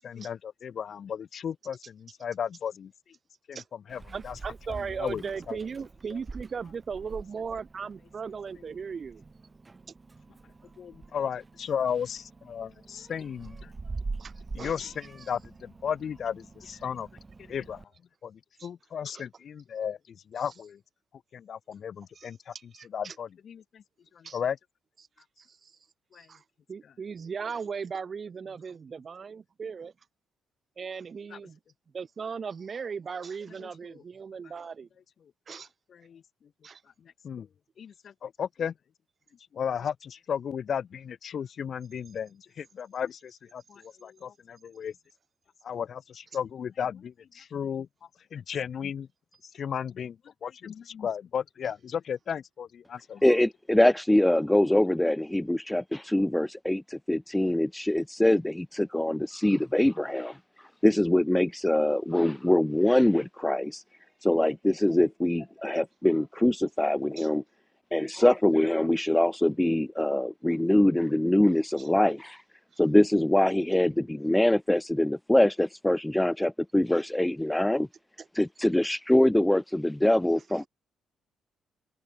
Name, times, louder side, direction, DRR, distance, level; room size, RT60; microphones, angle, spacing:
voice 1, 0.0-2.9 3.5-3.6 3.9-4.3 5.0-5.2 5.5-5.6 10.8-13.7 14.5-17.1 17.5-17.8 18.2-20.8 21.3-22.5 22.9-23.8 24.2-24.6 26.1-26.2 31.3-31.4 33.9-34.0 35.9-36.2 37.2-37.5 37.8-38.7 39.5-44.9 45.6-47.9 48.3-49.1 49.5-50.2 50.4-53.2, left 8 dB, 55° left, 0.9 m, -34 dB
Meow, 3.9-17.8, right 3 dB, 25° right, 6.9 m, -44 dB
voice 2, 4.1-9.2 14.2-14.8 18.6-18.7 19.1-19.2 20.5-20.6 22.1-23.2 24.2-24.4 25.4-25.8 26.1-26.4 26.7-29.9 30.8-31.6 31.9-34.9 35.5-35.7 36.6-36.8 67.2-67.3 71.8-71.9 72.7-72.8 78.2-78.3 80.4-80.7, right 6 dB, 40° right, 2.7 m, -38 dB
voice 3, 53.2-60.3 60.8-63.8 64.2-67.4 67.9-72.4 72.8-77.9 78.4-80.7, left 1 dB, 5° left, 0.4 m, -24 dB
cardioid pair, 90°, 0 cm